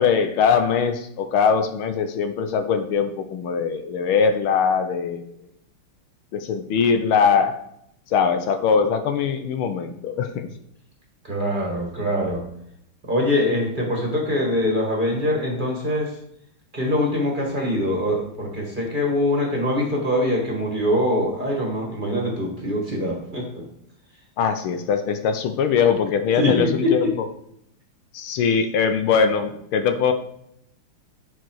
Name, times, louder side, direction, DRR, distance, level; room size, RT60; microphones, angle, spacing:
voice 1, 0.0-5.2 6.3-7.6 8.1-10.5 24.4-27.1 28.1-30.1, left 6 dB, 75° left, 8 dB, 1.5 m, -21 dB
voice 2, 11.2-12.4 13.1-16.2 16.7-23.7 26.4-27.1, left 1 dB, 25° right, -1 dB, 1.7 m, -23 dB
10.5 x 4.7 x 4.7 m, 0.75 s
omnidirectional pair, 2.4 m